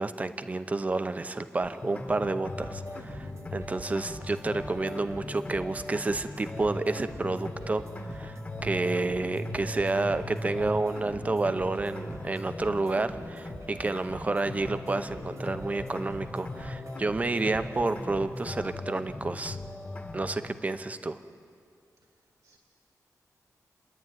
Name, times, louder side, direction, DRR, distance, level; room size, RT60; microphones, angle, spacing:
voice 1, 0.0-19.6 20.1-21.2, right 3 dB, 25° right, 10 dB, 0.7 m, -30 dB
sound 1, 1.6-20.5, left 1 dB, 25° left, 1.6 m, -39 dB
sound 2, 2.6-18.6, right 3 dB, 50° right, 1.1 m, -49 dB
voice 2, 22.0-22.6, right 4 dB, 70° right, 2 dB, 1.7 m, -68 dB
30.0 x 11.0 x 9.2 m, 2.3 s
wide cardioid pair, 165°, 6 cm